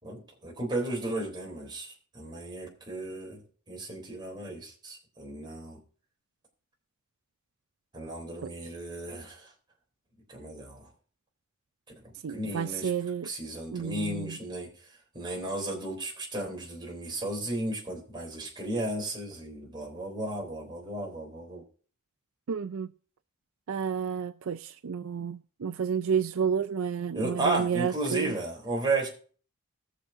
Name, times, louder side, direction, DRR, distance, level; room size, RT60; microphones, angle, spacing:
voice 1, 0.0-3.4 3.7-5.8 7.9-9.5 10.3-10.9 12.0-12.9 13.2-14.7 15.1-21.6 27.1-29.1, right 2 dB, 20° right, 3.5 m, -34 dB
voice 2, 12.2-13.3 13.7-14.4 22.5-22.9 23.7-28.4, right 7 dB, 70° right, 0.4 m, -31 dB
20.0 x 7.0 x 2.7 m
head